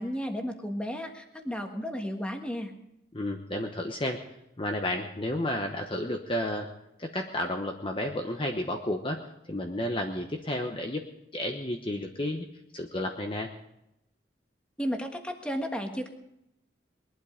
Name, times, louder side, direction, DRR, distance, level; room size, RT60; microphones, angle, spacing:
voice 1, 0.0-2.7 14.8-16.1, equal, 5° left, 4 dB, 1.5 m, -33 dB
voice 2, 3.1-4.2 4.6-6.7 7.0-9.2 9.5-11.1 11.3-12.5 12.7-13.5, left 1 dB, 25° left, 3 dB, 1.0 m, -31 dB
21.0 x 12.0 x 5.1 m, 0.83 s
head